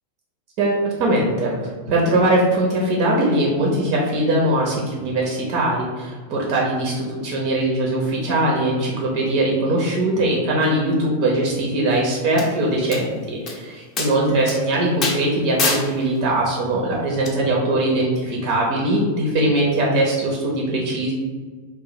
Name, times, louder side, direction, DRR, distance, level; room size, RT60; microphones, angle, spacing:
voice 1, 0.6-1.5 1.9-21.1, right 1 dB, 45° right, -3 dB, 0.8 m, -21 dB
sound 1, 12.4-12.5 12.9-13.0 13.5-13.6 14.0-14.1 14.5-14.6 15.0-15.2 15.6-15.8 17.3-17.4, left 3 dB, 30° left, 0.7 m, -23 dB
3.0 x 2.3 x 4.1 m, 1.5 s
figure-of-eight pair, 90°, 0 cm